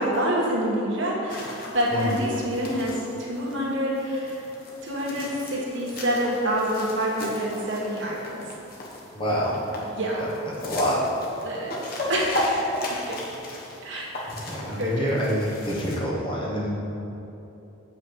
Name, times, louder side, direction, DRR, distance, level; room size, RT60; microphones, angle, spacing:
voice 1, 0.0-4.5 4.8-8.4 9.8-10.4 11.4-11.8 12.1-13.2 13.8-14.3 14.8-15.2, equal, 60° right, -4 dB, 1.5 m, -27 dB
sound 1, 1.3-16.0, left 1 dB, 45° left, 1.2 m, -35 dB
voice 2, 9.1-9.6 10.6-11.0 14.5-16.7, equal, 25° left, -5 dB, 1.2 m, -26 dB
7.6 x 5.4 x 5.3 m, 2.9 s
head